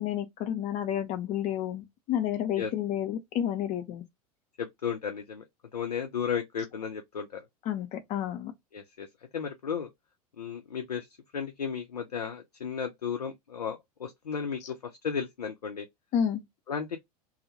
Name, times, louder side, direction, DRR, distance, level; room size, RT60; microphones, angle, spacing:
voice 1, 0.0-4.0 7.6-8.5 16.1-16.4, left 10 dB, 35° left, 0.6 m, -30 dB
voice 2, 4.6-5.4 5.7-7.4 8.7-9.1 9.3-9.9 10.4-11.1 11.3-14.8 15.0-15.9 16.7-17.0, left 7 dB, 80° left, 0.4 m, -34 dB
2.1 x 2.0 x 2.8 m
figure-of-eight pair, 85°, 20 cm